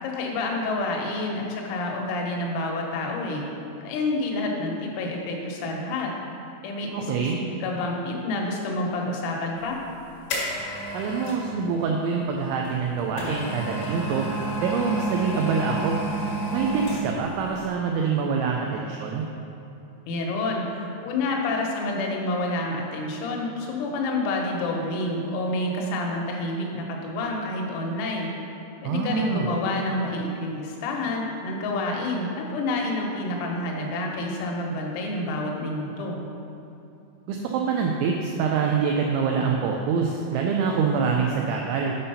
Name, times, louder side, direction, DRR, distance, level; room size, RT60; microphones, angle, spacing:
voice 1, 0.0-3.5 3.8-6.1 6.6-9.8 20.1-28.3 28.8-36.2, left 2 dB, 85° left, 0 dB, 3.8 m, -28 dB
voice 2, 6.9-7.4 10.9-14.3 14.6-16.0 16.5-19.2 28.8-29.5 37.3-41.9, right 5 dB, 85° right, 1 dB, 2.6 m, -25 dB
sound 1, 9.7-11.5 12.6-17.3 17.6-17.7, right 2 dB, 65° left, 3.7 m, -30 dB
8.6 x 5.5 x 5.5 m, 2.8 s
omnidirectional pair, 6.0 m